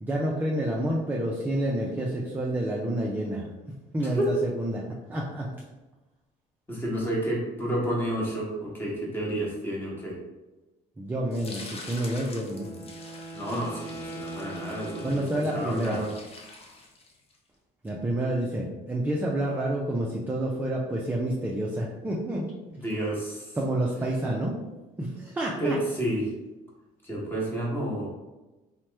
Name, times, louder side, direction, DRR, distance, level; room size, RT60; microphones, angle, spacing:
voice 1, 0.0-4.8 5.1-5.6 11.0-12.8 15.0-16.0 17.8-22.5 23.6-24.6 25.0-25.8, right 1 dB, 10° right, -2 dB, 0.4 m, -29 dB
voice 2, 6.7-10.2 13.3-15.2 15.5-16.1 22.7-23.5 25.6-26.3 27.0-28.1, right 1 dB, 10° left, -4 dB, 1.0 m, -30 dB
sound 1, 11.3-17.4, left 3 dB, 35° left, 0.6 m, -46 dB
Wind instrument woodwind instrument, 12.4-16.0, right 2 dB, 60° left, 1.0 m, -41 dB
2.9 x 2.1 x 3.2 m, 1.1 s
cardioid pair, 110°, 17 cm